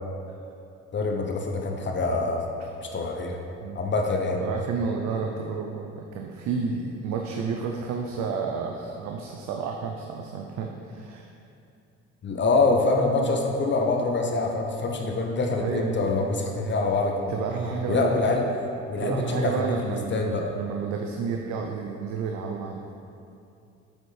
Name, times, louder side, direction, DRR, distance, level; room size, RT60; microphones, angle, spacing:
voice 1, 0.9-2.4 2.8-3.4 3.7-4.4 12.2-17.3 17.9-18.5 18.9-19.7 20.1-20.4, left 3 dB, 40° left, 2 dB, 0.7 m, -25 dB
voice 2, 4.4-11.3 15.6-16.1 17.3-18.2 19.0-22.8, right 5 dB, 70° right, 2 dB, 0.5 m, -31 dB
7.9 x 4.3 x 3.3 m, 2.6 s
supercardioid pair, 70°, 30 cm